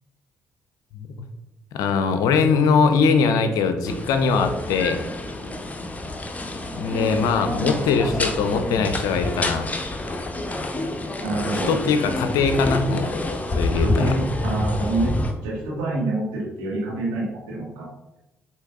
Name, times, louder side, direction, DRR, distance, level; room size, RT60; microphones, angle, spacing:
voice 1, 1.7-5.1 6.8-9.7 11.7-13.1 13.6-14.2, left 5 dB, 65° left, 8 dB, 0.5 m, -21 dB
sound 1, 3.9-15.3, left 1 dB, 20° left, 0.7 m, -27 dB
voice 2, 11.2-11.7 13.7-15.2 15.4-17.9, right 2 dB, 70° right, -4 dB, 1.5 m, -27 dB
7.8 x 2.9 x 2.3 m, 0.94 s
figure-of-eight pair, 45°, 7 cm